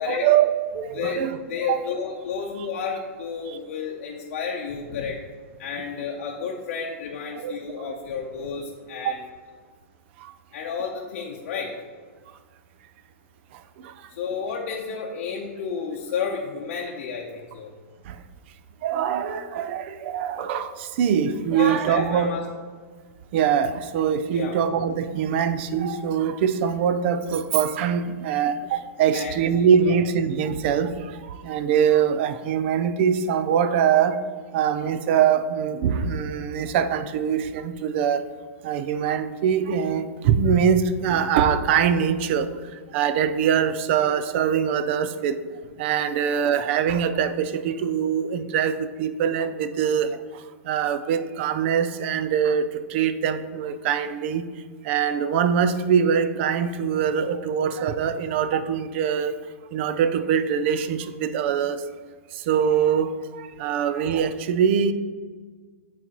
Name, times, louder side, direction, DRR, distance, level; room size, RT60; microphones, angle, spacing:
voice 1, 0.0-1.4 1.7-1.8 3.5-3.6 7.4-7.5 7.8-7.9 9.0-9.1 10.2-10.3 13.8-13.9 18.1-18.2 18.8-22.4 23.3-34.2 34.5-38.2 38.6-42.5 42.9-45.4 45.8-54.4 54.8-59.3 59.7-61.8 62.3-64.9, right 8 dB, 50° right, 12 dB, 0.4 m, -23 dB
voice 2, 1.5-5.2 5.6-9.2 10.5-11.7 14.1-17.7 21.5-22.4 24.3-24.5 29.0-30.0, left 6 dB, 65° left, -2 dB, 0.7 m, -31 dB
8.5 x 4.0 x 2.9 m, 1.6 s
hypercardioid pair, 135°, 8 cm